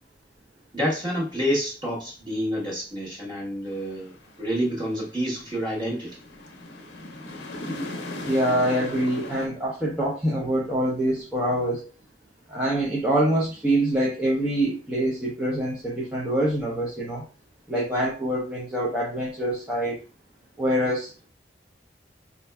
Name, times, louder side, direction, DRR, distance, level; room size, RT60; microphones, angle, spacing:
voice 1, 0.7-6.2, equal, 25° right, -5 dB, 1.2 m, -28 dB
sound 1, 3.7-9.5, left 1 dB, 70° left, 0.7 m, -38 dB
voice 2, 8.3-11.9 12.5-17.2 17.7-20.0 20.6-21.3, right 1 dB, 5° right, -6 dB, 0.6 m, -25 dB
4.3 x 2.6 x 2.2 m, 0.34 s
head